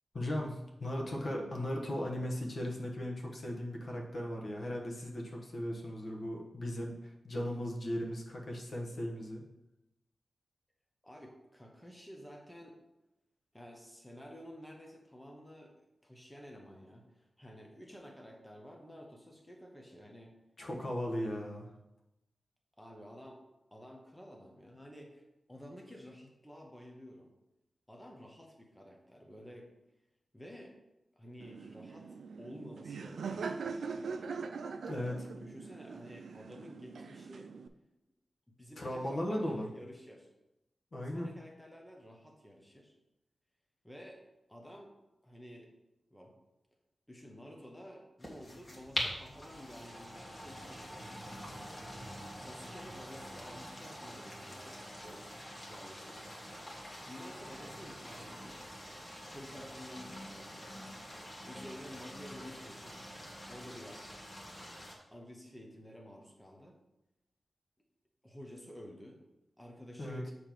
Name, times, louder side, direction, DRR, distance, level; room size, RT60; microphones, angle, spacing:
voice 1, 0.1-9.4 20.6-21.7 34.8-35.3 38.8-39.7 40.9-41.3 70.0-70.3, left 1 dB, 50° left, -1 dB, 1.2 m, -37 dB
voice 2, 11.0-12.8 13.5-20.3 22.8-23.4 23.7-27.3 27.9-29.7 30.3-30.8 31.2-34.4 35.4-37.5 38.5-40.3 41.0-42.9 43.8-45.7 46.1-46.4 47.1-51.3 52.3-55.3 55.5-56.3 57.0-58.6 59.3-60.7 61.4-63.0 63.5-64.1 65.1-66.8 68.2-69.2 69.6-70.3, equal, 5° left, 1 dB, 1.0 m, -51 dB
Laughter, 31.4-37.7, right 5 dB, 90° right, 0.4 m, -42 dB
sound 1, 48.2-64.9, equal, 25° left, 1.6 m, -45 dB
7.0 x 3.3 x 5.9 m, 0.94 s
wide cardioid pair, 105°, 0 cm